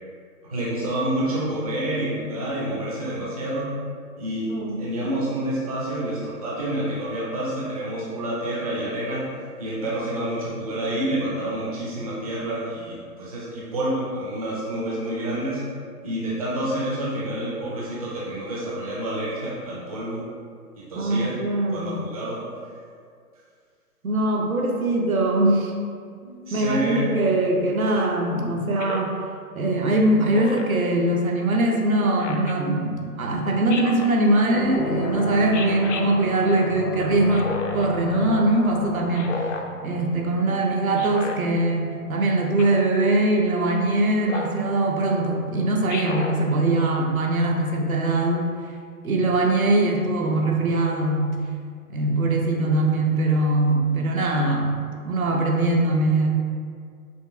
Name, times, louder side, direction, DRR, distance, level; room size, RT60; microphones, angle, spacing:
voice 1, 0.4-3.7 4.2-9.2 9.6-15.6 16.0-20.2 20.8-21.3 21.7-22.4 26.2-27.1, right 1 dB, 25° right, -6 dB, 0.5 m, -28 dB
voice 2, 4.5-4.8 21.0-22.0 24.0-25.7 26.5-29.1 29.5-37.5 37.7-39.4 39.8-48.5 49.0-51.3 51.9-54.7 55.0-56.3, right 2 dB, 65° right, 0 dB, 0.7 m, -22 dB
Speech synthesizer, 28.8-29.2 30.3-30.8 32.2-32.5 33.7-34.2 35.5-36.0 37.3-37.9 39.1-39.7 41.0-41.4 42.6-42.9 44.3-44.6 45.9-46.4, left 4 dB, 55° left, 0.5 m, -32 dB
sound 1, 34.4-40.6, left 2 dB, 90° left, 0.7 m, -33 dB
5.2 x 3.2 x 2.4 m, 2.1 s
figure-of-eight pair, 135°, 46 cm